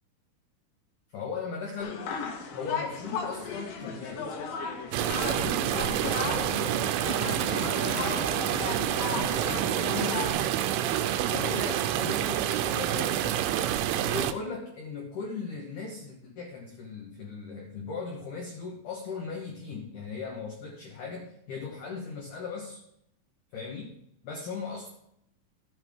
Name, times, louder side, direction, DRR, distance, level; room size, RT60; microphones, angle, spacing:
voice 1, 1.1-2.1 2.5-4.3 5.2-10.3 11.3-13.6 14.0-22.8 23.5-24.0 24.2-24.9, left 5 dB, 80° left, 0 dB, 1.8 m, -38 dB
sound 1, 1.8-10.3, left 5 dB, 65° left, 2.7 m, -36 dB
sound 2, 4.9-14.3, right 11 dB, 90° right, 3.1 m, -28 dB
13.0 x 8.9 x 3.6 m, 0.76 s
omnidirectional pair, 5.6 m